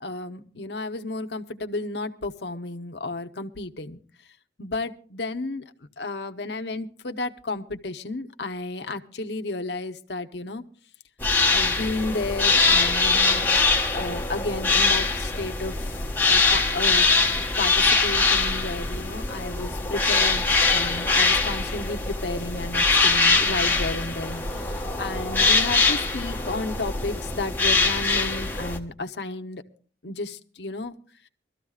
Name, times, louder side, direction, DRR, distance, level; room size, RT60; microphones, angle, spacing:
voice 1, 0.0-4.0 4.6-5.6 6.0-10.6 11.5-13.5 13.9-15.8 16.3-17.1 17.6-29.6 30.0-30.9, left 2 dB, 70° left, 8 dB, 1.0 m, -32 dB
sound 1, 11.2-28.8, left 3 dB, 10° left, 1.3 m, -22 dB
23.5 x 14.0 x 2.4 m, 0.43 s
head